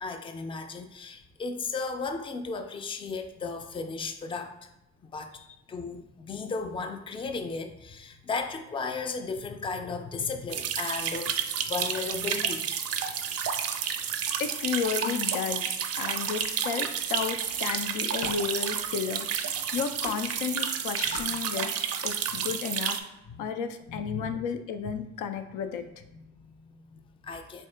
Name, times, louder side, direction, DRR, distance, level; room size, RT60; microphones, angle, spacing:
voice 1, 0.0-4.7 5.0-5.4 5.7-11.4 11.6-12.7 21.1-21.2 23.3-23.4 23.9-24.3 26.1-27.7, left 4 dB, 20° left, 6 dB, 0.3 m, -35 dB
sound 1, 10.5-23.0, right 8 dB, 55° right, 0.4 m, -31 dB
voice 2, 14.4-19.3 19.7-23.0 23.4-25.9, left 7 dB, 90° left, 7 dB, 0.5 m, -33 dB
Camera, 15.7-16.1 16.4-21.9, left 2 dB, 65° left, 0.8 m, -48 dB
3.6 x 2.7 x 3.2 m, 0.89 s
cardioid pair, 90°, 30 cm